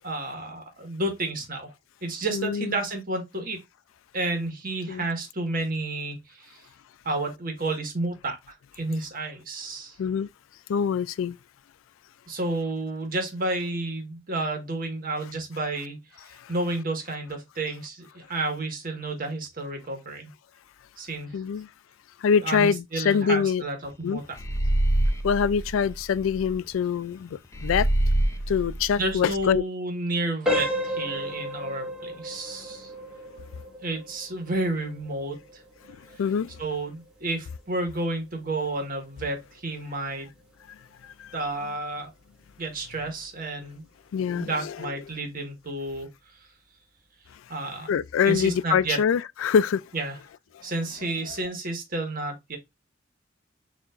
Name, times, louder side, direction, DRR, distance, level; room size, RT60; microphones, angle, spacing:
voice 1, 0.0-1.7 2.0-3.6 4.1-6.6 7.0-9.9 12.3-16.0 16.5-20.3 21.0-21.3 22.4-24.2 29.0-32.9 33.8-35.6 36.6-40.3 41.3-42.1 42.6-43.8 44.3-46.1 47.5-47.9 48.2-49.0 49.9-50.2 50.6-52.6, right 2 dB, 45° right, 1.5 m, -31 dB
voice 2, 2.3-2.8 4.9-5.0 10.0-10.3 10.7-11.4 16.4-16.5 21.3-21.7 22.2-23.6 24.0-24.2 25.2-27.9 28.5-29.6 36.2-36.5 40.7-40.8 41.0-41.4 44.1-44.9 47.9-49.8 50.5-50.6, left 7 dB, 90° left, 0.3 m, -24 dB
sound 1, 24.4-26.5 27.5-29.6, right 1 dB, 15° left, 0.5 m, -26 dB
sound 2, 30.4-41.1 41.5-41.7 42.3-42.4 42.9-43.0, left 1 dB, 5° right, 1.7 m, -35 dB
6.7 x 2.9 x 2.5 m
head